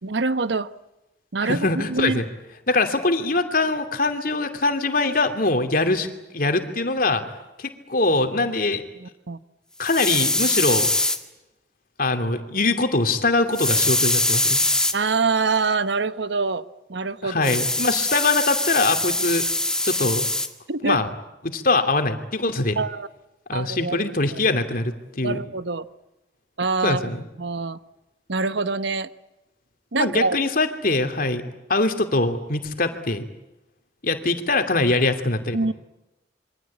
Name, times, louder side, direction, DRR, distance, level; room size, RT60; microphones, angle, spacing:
voice 1, 0.0-0.7 1.3-2.2 8.4-8.5 9.0-9.4 14.9-16.6 16.9-17.7 20.7-21.0 22.8-23.1 23.5-24.1 25.2-25.8 26.6-27.1 27.4-27.8 28.3-29.1 29.9-30.4 35.5-35.7, right 4 dB, 75° right, 13 dB, 1.1 m, -25 dB
voice 2, 1.4-2.2 2.7-6.1 6.3-7.2 7.6-8.8 9.8-10.9 12.0-14.6 17.2-19.4 19.8-20.2 20.8-21.1 21.4-22.8 23.5-25.4 26.8-27.2 30.0-31.4 31.7-33.2 34.0-35.6, left 2 dB, 50° left, 7 dB, 2.8 m, -23 dB
sound 1, 9.8-11.2 13.5-14.9 17.4-20.5, left 2 dB, 5° left, 1.9 m, -23 dB
27.5 x 23.5 x 8.7 m, 0.95 s
head